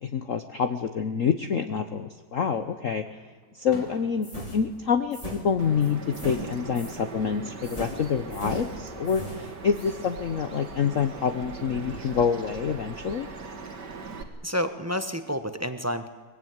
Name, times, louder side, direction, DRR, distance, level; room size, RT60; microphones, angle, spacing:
voice 1, 0.0-3.1 3.5-13.3, left 6 dB, 50° left, 8 dB, 1.1 m, -27 dB
Fireworks, 1.9-2.6 3.1-6.2 6.5-7.1 8.6-9.4, left 1 dB, 75° left, 5.0 m, -50 dB
sound 1, 4.2-7.0 7.6-10.1, equal, 20° left, 3.3 m, -38 dB
Bird vocalization bird call bird song, 5.6-14.2, right 4 dB, 60° right, 2.6 m, -40 dB
voice 2, 14.4-16.1, equal, 10° right, 9 dB, 0.7 m, -29 dB
23.5 x 21.0 x 9.4 m, 1.4 s
omnidirectional pair, 2.1 m